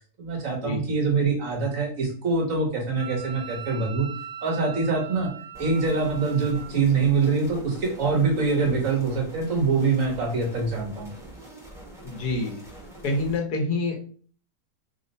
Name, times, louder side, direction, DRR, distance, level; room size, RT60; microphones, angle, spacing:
voice 1, 0.2-4.1 4.4-5.3 5.6-11.1, right 4 dB, 60° right, 1 dB, 1.2 m, -24 dB
Wind instrument woodwind instrument, 3.0-6.7, right 9 dB, 85° right, 1.2 m, -40 dB
sound 1, 5.5-13.4, right 1 dB, 5° right, 0.7 m, -44 dB
voice 2, 12.0-12.6 13.0-14.0, left 2 dB, 90° left, 2 dB, 1.4 m, -26 dB
3.4 x 2.1 x 3.9 m, 0.43 s
omnidirectional pair, 1.6 m